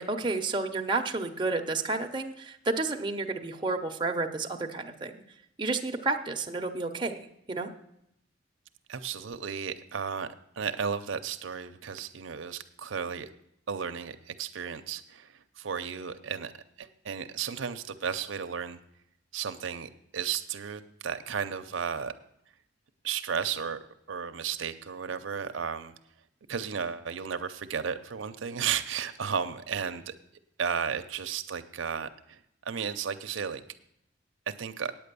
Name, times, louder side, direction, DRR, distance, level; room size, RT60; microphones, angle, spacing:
voice 1, 0.0-5.1 5.6-7.7, right 3 dB, 25° right, 3 dB, 0.8 m, -31 dB
voice 2, 8.9-10.3 10.6-13.3 13.7-16.5 16.8-18.8 19.3-22.1 23.0-23.8 24.1-25.9 26.5-30.1 30.6-33.6 34.5-34.9, right 7 dB, 85° right, 8 dB, 0.6 m, -34 dB
8.8 x 8.7 x 6.8 m, 0.76 s
head